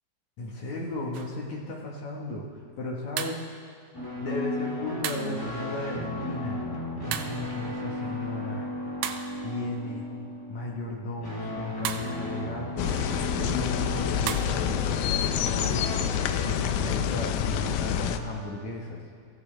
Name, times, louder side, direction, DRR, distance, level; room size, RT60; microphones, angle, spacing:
voice 1, 0.4-2.5 2.8-3.4 4.2-6.6 7.1-8.7 9.4-10.1 10.5-12.9 13.3-16.1 16.4-19.0, left 2 dB, 65° left, -2 dB, 1.8 m, -35 dB
sound 1, 1.1-1.4 3.2-3.5 5.0-5.4 7.1-7.5 9.0-9.5 11.9-12.2 14.3-14.6, right 9 dB, 80° right, 2.6 m, -34 dB
sound 2, 3.9-18.6, left 1 dB, 20° left, 0.5 m, -36 dB
sound 3, 12.8-18.2, left 10 dB, 85° left, 2.3 m, -27 dB
23.5 x 14.5 x 3.3 m, 2.3 s
omnidirectional pair, 5.2 m